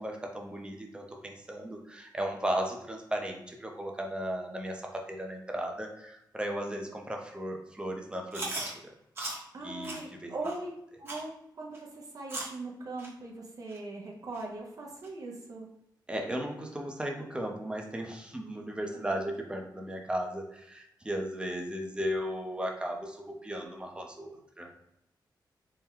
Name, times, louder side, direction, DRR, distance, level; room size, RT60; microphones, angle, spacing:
voice 1, 0.0-8.9 9.6-10.3 16.1-24.8, equal, 10° right, 1 dB, 0.7 m, -36 dB
Chewing mastication, 8.3-8.7 9.2-9.4 9.8-10.0 10.4-10.6 11.1-11.2 11.7-11.8 12.3-12.6 13.0-13.1 13.7-13.8 14.3-14.4 15.0-15.1, right 2 dB, 30° right, 1.0 m, -37 dB
voice 2, 9.5-10.7 11.0-15.7, right 2 dB, 50° right, -2 dB, 0.7 m, -40 dB
4.4 x 2.2 x 3.6 m, 0.79 s
wide cardioid pair, 115°, 8 cm